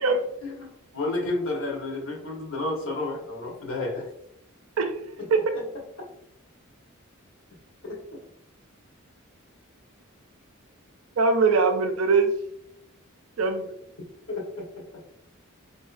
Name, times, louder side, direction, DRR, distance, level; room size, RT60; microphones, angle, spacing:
voice 1, 0.4-4.1 5.2-5.7 7.8-8.0 14.3-14.6, left 2 dB, 70° left, -1 dB, 1.0 m, -31 dB
voice 2, 11.2-12.3 13.4-13.7, right 4 dB, 85° right, 7 dB, 0.4 m, -21 dB
3.8 x 2.6 x 2.4 m, 0.76 s
head